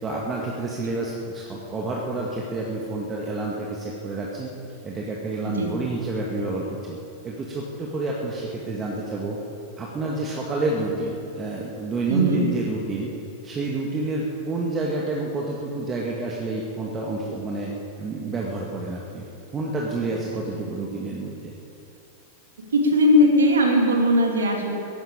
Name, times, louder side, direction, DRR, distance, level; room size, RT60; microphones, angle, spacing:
voice 1, 0.0-4.5 4.8-7.0 7.2-9.4 9.8-13.1 13.4-17.7 18.0-21.5, right 2 dB, 20° right, -3 dB, 2.1 m, -29 dB
voice 2, 12.1-12.4 22.7-24.8, equal, 70° right, 2 dB, 3.0 m, -19 dB
15.0 x 10.5 x 9.0 m, 2.7 s
figure-of-eight pair, 90°, 0 cm